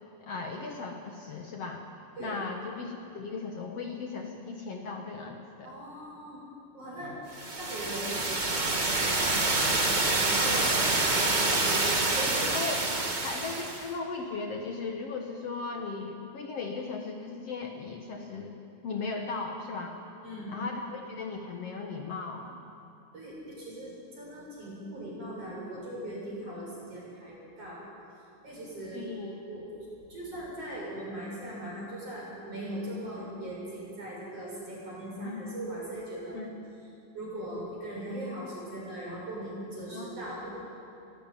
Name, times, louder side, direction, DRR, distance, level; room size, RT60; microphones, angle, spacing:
voice 1, 0.2-1.8 2.2-5.7 12.5-18.5 18.8-19.9 20.5-22.5 28.9-29.3 35.2-35.6 36.3-36.6 39.9-40.1, left 4 dB, 55° left, 2 dB, 2.1 m, -37 dB
voice 2, 5.6-6.4 6.7-7.2 7.6-9.3 9.6-9.8 10.1-12.5 20.2-20.5 23.1-27.8 28.4-29.0 29.5-29.8 30.1-36.4 37.1-40.5, right 1 dB, 45° right, -5 dB, 8.2 m, -39 dB
sound 1, 7.4-13.9, right 2 dB, 80° right, 0.4 m, -27 dB
22.5 x 16.5 x 9.1 m, 2.6 s
omnidirectional pair, 3.7 m